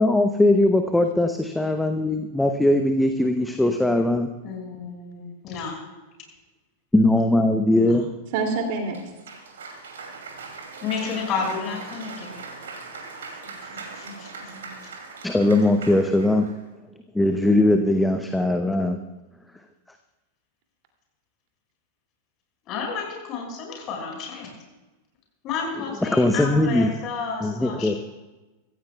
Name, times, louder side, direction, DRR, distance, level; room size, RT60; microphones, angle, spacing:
voice 1, 0.0-4.3 6.9-8.1 15.2-16.5 17.1-19.0 26.0-26.9 27.4-28.0, left 1 dB, 5° left, 6 dB, 0.8 m, -20 dB
voice 2, 4.4-5.8 7.8-8.0 10.8-12.3 14.0-14.3 22.7-24.5 25.4-28.0, left 5 dB, 35° left, 0 dB, 5.6 m, -31 dB
voice 3, 8.3-9.0 11.0-11.7 12.0-12.2 13.4-13.8 14.0-14.1 14.4-14.8, right 4 dB, 50° right, 2 dB, 2.6 m, -31 dB
Cheering / Applause, 8.9-16.6, right 4 dB, 65° right, 2.7 m, -40 dB
25.0 x 15.5 x 2.3 m, 1.1 s
figure-of-eight pair, 90°, 0 cm